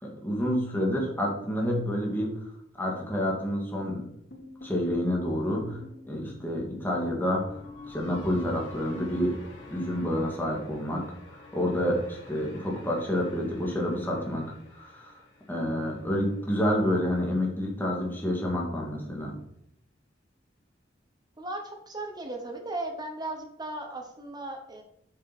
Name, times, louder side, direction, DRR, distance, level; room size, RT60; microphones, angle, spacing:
voice 1, 0.0-2.3 2.8-4.0 4.6-5.8 6.1-7.6 7.9-9.4 9.7-11.0 11.3-14.4 14.7-15.2 15.5-19.4, equal, 10° left, -2 dB, 2.2 m, -28 dB
sound 1, 4.3-16.5, left 2 dB, 70° left, 2.7 m, -48 dB
voice 2, 21.4-24.8, right 2 dB, 20° right, 3 dB, 1.1 m, -36 dB
7.7 x 6.5 x 4.2 m, 0.75 s
head